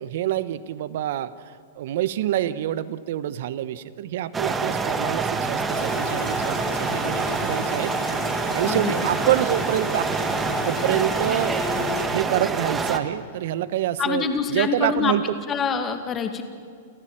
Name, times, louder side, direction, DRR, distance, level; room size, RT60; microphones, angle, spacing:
voice 1, 0.0-7.9 8.5-10.0 10.6-11.6 12.1-14.2 14.5-15.2, right 12 dB, 65° right, 16 dB, 1.1 m, -26 dB
sound 1, 4.3-13.0, right 4 dB, 15° right, 1.6 m, -26 dB
sound 2, 5.7-12.1, left 6 dB, 70° left, 4.8 m, -35 dB
voice 2, 8.7-9.0 14.0-15.1 15.5-16.4, left 6 dB, 20° left, 7 dB, 2.2 m, -25 dB
29.5 x 14.0 x 9.0 m, 2.2 s
hypercardioid pair, 135°, 0 cm